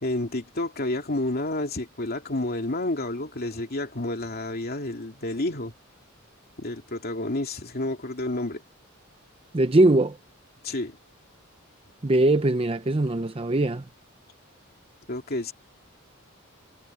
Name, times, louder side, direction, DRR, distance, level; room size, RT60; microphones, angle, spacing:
voice 1, 0.0-5.7 6.6-8.6 10.6-11.0 15.1-15.5, left 2 dB, 50° left, 2.7 m, -30 dB
voice 2, 9.5-10.2 12.0-13.8, right 2 dB, 25° right, 0.7 m, -21 dB
head